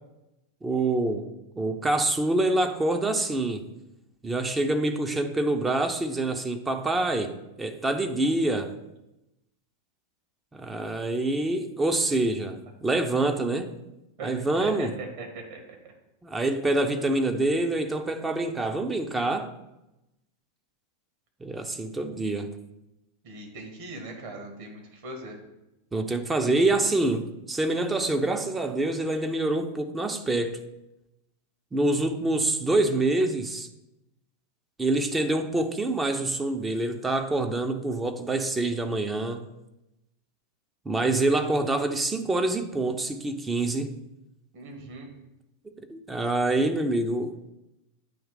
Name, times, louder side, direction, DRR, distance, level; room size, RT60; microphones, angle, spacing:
voice 1, 0.6-1.3 1.6-3.7 4.2-8.7 10.5-13.7 14.2-14.9 16.2-19.5 21.4-22.5 25.9-30.6 31.7-33.7 34.8-39.5 40.9-44.0 45.9-47.4, right 2 dB, 10° right, 0.5 m, -26 dB
voice 2, 14.2-15.9 16.7-17.0 23.2-25.4 44.5-45.1, right 3 dB, 50° right, 1.4 m, -40 dB
8.7 x 3.1 x 4.8 m
figure-of-eight pair, 90°, 0 cm